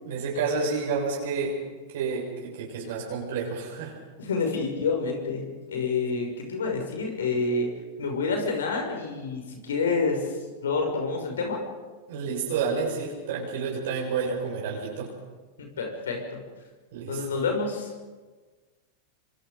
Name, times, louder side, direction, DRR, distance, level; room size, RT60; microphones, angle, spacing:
voice 1, 0.0-1.6 1.9-3.9 12.1-15.1 16.9-17.2, right 5 dB, 70° right, -2 dB, 6.6 m, -29 dB
voice 2, 4.2-7.7 8.0-10.3 10.6-11.6 15.6-16.2 17.1-17.9, left 4 dB, 80° left, 3 dB, 6.2 m, -28 dB
26.0 x 25.0 x 5.3 m, 1.4 s
hypercardioid pair, 100°, 0 cm